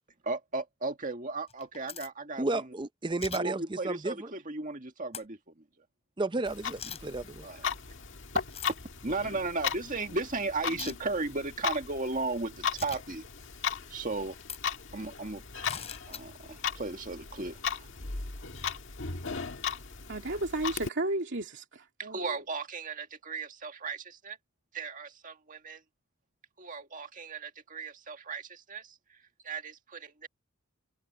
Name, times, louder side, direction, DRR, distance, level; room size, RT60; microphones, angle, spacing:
voice 1, 0.2-2.7 3.3-5.6 7.4-7.6 8.3-8.4 9.0-13.2 13.6-14.4 14.9-15.4 16.1-17.9 20.3-20.4 22.0-24.4 24.7-25.8 26.6-30.3, right 3 dB, 35° right, 2.0 m, -36 dB
sound 1, 1.5-2.1 3.2-3.4 5.1-5.2 6.8-7.0 8.5-8.8 10.7-10.9 12.8-13.0 14.4-14.6 15.6-16.2, left 7 dB, 30° left, 7.0 m, -40 dB
voice 2, 2.4-4.3 6.2-7.2, right 2 dB, 20° right, 0.6 m, -32 dB
Clock, 6.4-20.9, left 6 dB, 60° left, 1.8 m, -37 dB
voice 3, 20.1-22.2, right 2 dB, 55° right, 2.7 m, -33 dB
head